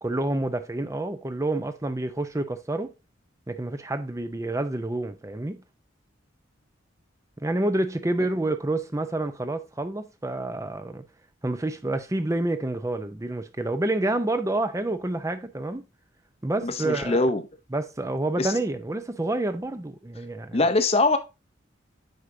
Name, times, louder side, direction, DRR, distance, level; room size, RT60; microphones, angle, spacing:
voice 1, 0.0-2.9 3.5-5.6 7.4-11.0 11.4-15.8 16.4-17.2 17.7-20.6, right 2 dB, 15° right, 0.5 m, -28 dB
voice 2, 16.6-17.4 18.4-18.5 20.5-21.2, left 2 dB, 30° left, 0.6 m, -22 dB
7.9 x 4.9 x 2.6 m
head